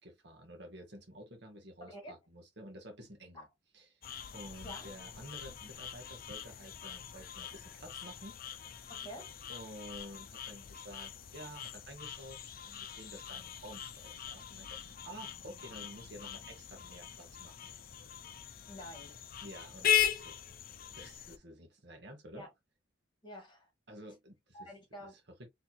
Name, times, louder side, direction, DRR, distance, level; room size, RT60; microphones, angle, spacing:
voice 1, 0.0-3.5 3.7-4.0 4.3-8.4 9.5-17.7 19.4-20.4 20.9-22.5 23.9-24.7 25.0-25.5, equal, 55° right, 1.4 m, -51 dB
voice 2, 1.8-2.2 3.3-3.5 4.6-4.9 8.9-9.3 18.7-19.3 22.3-22.5 23.2-23.7 24.5-25.1, equal, 25° left, 2.1 m, -48 dB
sound 1, 4.0-21.4, left 9 dB, 45° left, 0.6 m, -39 dB
4.3 x 3.4 x 2.8 m
head